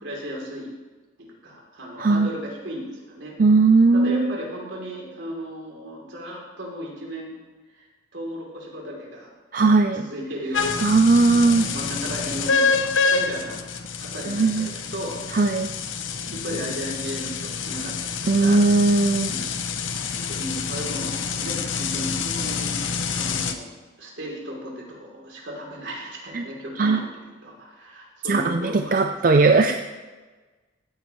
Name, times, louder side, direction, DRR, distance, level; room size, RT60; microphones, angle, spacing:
voice 1, 0.0-0.7 1.2-3.3 3.9-7.3 7.7-7.9 8.1-9.3 9.9-10.9 11.2-13.6 14.0-15.2 16.2-18.6 19.3-19.4 20.4-23.7 24.0-29.6, equal, 75° right, -2 dB, 3.3 m, -35 dB
voice 2, 3.4-4.4 9.5-10.1 10.8-11.7 14.3-14.7 15.3-15.7 18.3-19.3 26.3-26.4 26.8-27.1 28.2-29.8, right 3 dB, 45° right, 6 dB, 0.4 m, -18 dB
sound 1, 10.5-23.5, left 5 dB, 85° left, 0.9 m, -27 dB
16.0 x 9.5 x 3.2 m, 1.3 s
head